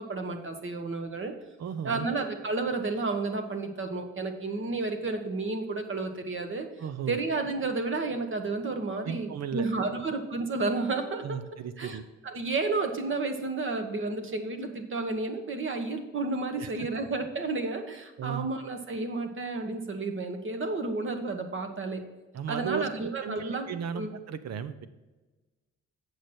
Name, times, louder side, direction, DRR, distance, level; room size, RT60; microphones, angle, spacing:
voice 1, 0.0-1.3 1.8-6.7 7.1-11.4 11.8-22.0 22.5-24.1, right 3 dB, 40° right, 6 dB, 1.4 m, -31 dB
voice 2, 1.6-2.1 6.8-7.2 9.0-9.7 11.2-12.1 16.6-16.7 18.2-18.5 22.3-22.9 23.2-24.9, right 8 dB, 60° right, 12 dB, 0.8 m, -35 dB
8.1 x 6.5 x 4.3 m, 1.2 s
cardioid pair, 90°, 30 cm